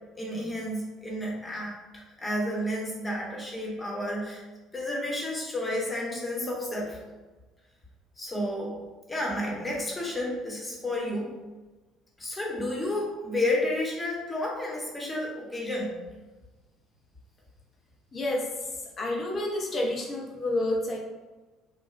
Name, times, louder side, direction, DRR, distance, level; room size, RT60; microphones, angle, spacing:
voice 1, 0.2-4.4 4.7-7.0 8.2-8.7 9.1-11.4 12.2-15.9, left 1 dB, 20° left, -3 dB, 1.0 m, -31 dB
voice 2, 18.1-18.4 19.0-21.0, left 1 dB, 40° left, -1 dB, 0.7 m, -29 dB
3.1 x 2.3 x 2.5 m, 1.2 s
hypercardioid pair, 55°, 0 cm